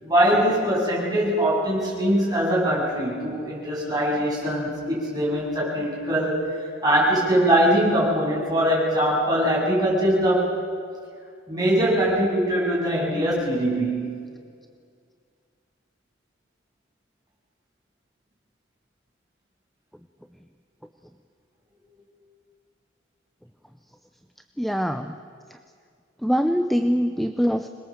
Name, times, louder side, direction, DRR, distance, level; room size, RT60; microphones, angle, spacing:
voice 1, 0.0-6.4 6.8-10.5 11.5-14.3, equal, 20° right, -5 dB, 8.0 m, -22 dB
voice 2, 24.6-25.1 26.2-27.7, equal, ahead, 7 dB, 0.6 m, -23 dB
26.5 x 21.0 x 7.5 m, 2.2 s
head